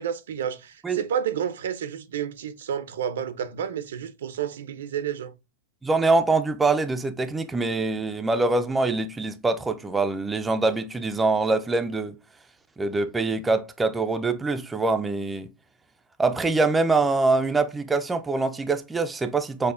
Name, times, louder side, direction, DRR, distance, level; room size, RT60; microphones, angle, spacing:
voice 1, 0.0-5.3, right 8 dB, 75° right, 0.5 m, -30 dB
voice 2, 5.8-12.2 12.8-15.5 16.2-19.7, right 3 dB, 10° right, 0.3 m, -24 dB
5.3 x 2.1 x 2.4 m
hypercardioid pair, 135°, 0 cm